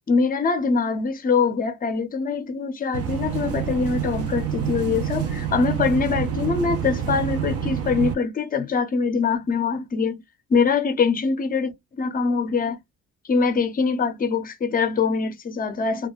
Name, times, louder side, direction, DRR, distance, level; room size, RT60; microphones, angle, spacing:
voice 1, 0.1-10.2 10.5-12.8 13.3-16.1, left 5 dB, 25° left, 0.6 m, -23 dB
sound 1, 2.9-8.1, right 8 dB, 45° right, 0.5 m, -27 dB
2.3 x 2.1 x 3.0 m
cardioid pair, 110°, 33 cm